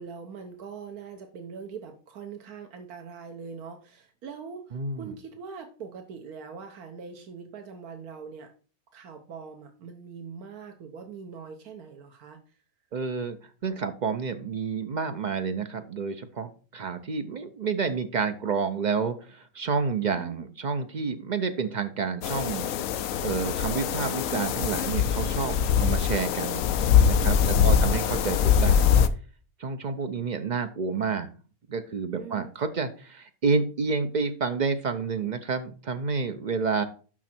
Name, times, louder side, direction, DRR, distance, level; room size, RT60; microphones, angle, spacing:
voice 1, 0.0-8.5 8.9-12.4 20.1-20.5 27.5-28.7 32.1-32.5, right 6 dB, 80° right, 5 dB, 1.4 m, -42 dB
voice 2, 4.7-5.1 12.9-13.4 13.6-22.7 23.2-26.7 27.0-28.9 29.6-31.3 31.7-36.8, right 5 dB, 60° right, 8 dB, 0.4 m, -29 dB
sound 1, 22.2-29.1, left 7 dB, 70° left, 1.0 m, -23 dB
6.1 x 6.0 x 4.4 m, 0.39 s
omnidirectional pair, 1.6 m